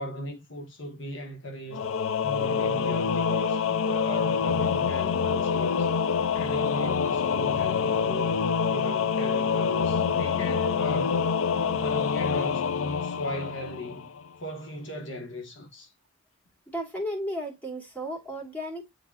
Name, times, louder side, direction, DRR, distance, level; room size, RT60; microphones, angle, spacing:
voice 1, 0.0-1.9 2.2-5.9 6.3-8.3 8.7-11.3 11.5-14.1 14.4-15.9, equal, 65° left, 1.5 m, -38 dB
Singing / Musical instrument, 1.7-14.2, left 6 dB, 90° left, 0.5 m, -26 dB
voice 2, 16.7-18.9, equal, 5° left, 2.7 m, -34 dB
9.6 x 4.1 x 2.5 m
head